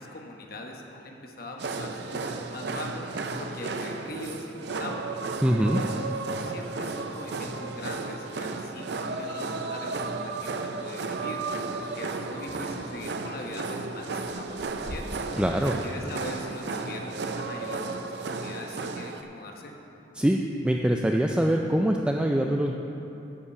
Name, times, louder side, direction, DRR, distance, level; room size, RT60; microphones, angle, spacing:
voice 1, 0.0-5.0 5.6-11.4 11.8-15.1 15.8-19.8, left 1 dB, 55° left, 1 dB, 1.1 m, -41 dB
sound 1, 1.6-19.2, right 3 dB, 65° right, 0.6 m, -34 dB
voice 2, 5.4-5.8 15.4-15.7 20.2-20.4 20.6-22.7, right 1 dB, 5° right, 1 dB, 0.3 m, -23 dB
sound 2, 12.4-13.5 14.1-15.5, left 1 dB, 75° left, 0.9 m, -43 dB
11.0 x 5.8 x 6.9 m, 2.9 s
head